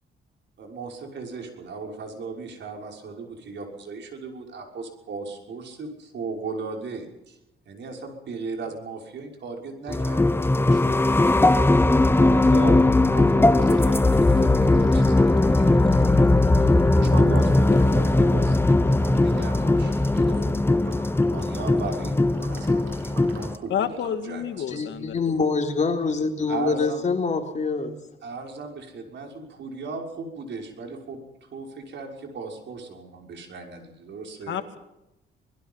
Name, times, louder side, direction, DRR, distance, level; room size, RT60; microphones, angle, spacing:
voice 1, 0.6-7.4 7.7-11.3 12.1-12.8 13.1-16.3 16.5-23.9 24.2-24.8 26.5-27.0 28.2-34.6, right 4 dB, 65° right, 2 dB, 6.0 m, -37 dB
sound 1, 9.9-23.5, left 2 dB, 10° left, 1.0 m, -19 dB
Liquid, 13.3-25.1, right 4 dB, 90° right, 7.5 m, -46 dB
voice 2, 23.7-25.2 34.5-34.8, left 9 dB, 70° left, 8 dB, 2.0 m, -29 dB
voice 3, 24.7-27.9, left 4 dB, 35° left, 3 dB, 3.7 m, -25 dB
24.5 x 21.0 x 5.7 m, 0.90 s
cardioid pair, 90°, 20 cm